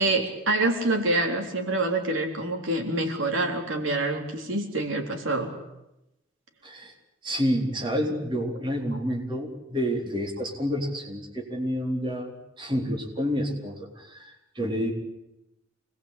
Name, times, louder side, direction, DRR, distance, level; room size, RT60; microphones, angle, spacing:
voice 1, 0.0-5.6, right 2 dB, 75° right, 3 dB, 3.9 m, -26 dB
voice 2, 7.2-14.9, equal, 25° right, 0 dB, 4.1 m, -29 dB
26.5 x 21.0 x 8.6 m, 0.90 s
head